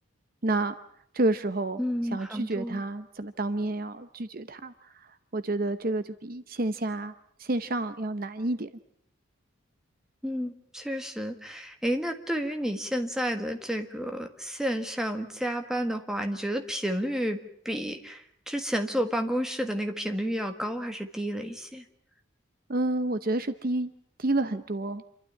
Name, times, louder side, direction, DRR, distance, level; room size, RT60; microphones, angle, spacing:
voice 1, 0.4-0.7 1.1-1.8 2.0-7.1 7.4-8.7 22.7-23.9 24.2-25.0, right 2 dB, 45° right, 11 dB, 0.8 m, -29 dB
voice 2, 1.8-2.8 10.2-21.8, equal, 5° right, 4 dB, 1.5 m, -31 dB
27.5 x 12.5 x 10.0 m, 0.71 s
head